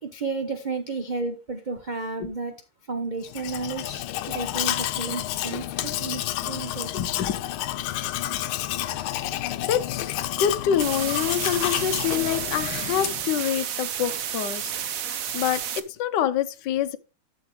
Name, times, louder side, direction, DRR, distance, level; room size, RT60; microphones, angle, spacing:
voice 1, 0.0-2.5 2.9-6.9, right 3 dB, 85° right, 0.4 m, -32 dB
Domestic sounds home sounds, 3.2-13.3, left 13 dB, 85° left, 1.5 m, -30 dB
voice 2, 6.9-7.3 9.7-14.7 15.0-17.0, left 9 dB, 65° left, 1.3 m, -26 dB
sound 1, 10.8-15.8, right 9 dB, 65° right, 0.8 m, -31 dB
12.0 x 7.0 x 3.1 m
omnidirectional pair, 2.3 m